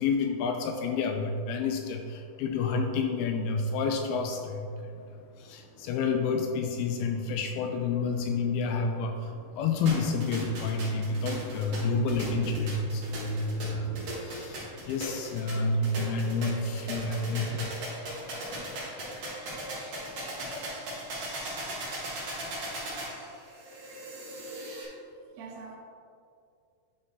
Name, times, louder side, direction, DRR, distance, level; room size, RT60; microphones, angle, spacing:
voice 1, 0.0-5.1 5.4-18.1, left 4 dB, 85° left, 4 dB, 2.3 m, -29 dB
Thunder, 4.4-18.7 19.2-19.3 19.6-20.2, left 1 dB, 60° left, 3.4 m, -49 dB
sound 1, 9.9-24.9, right 1 dB, 55° right, 1.9 m, -38 dB
voice 2, 24.4-25.8, right 4 dB, 75° right, -2 dB, 2.9 m, -48 dB
9.6 x 3.9 x 4.0 m, 2.4 s
omnidirectional pair, 4.8 m